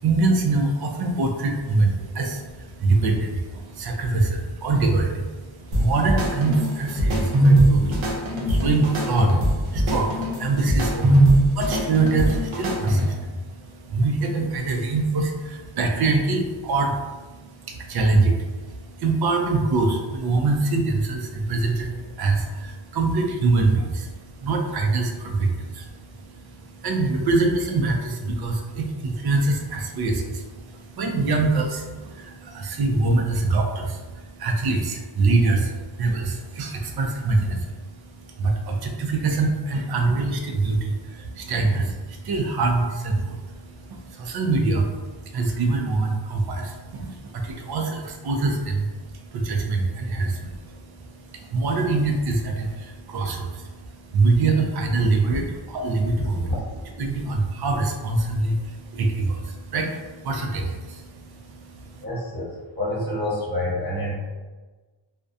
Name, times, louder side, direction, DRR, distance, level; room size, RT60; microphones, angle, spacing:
voice 1, 0.0-56.5 57.0-62.0, right 3 dB, 55° right, 2 dB, 0.5 m, -24 dB
sound 1, 5.7-13.3, right 1 dB, 80° right, 0.7 m, -21 dB
voice 2, 56.2-56.6 62.0-62.5 62.8-64.2, left 1 dB, 20° left, -6 dB, 1.0 m, -27 dB
2.3 x 2.1 x 2.6 m, 1.3 s
wide cardioid pair, 80°, 47 cm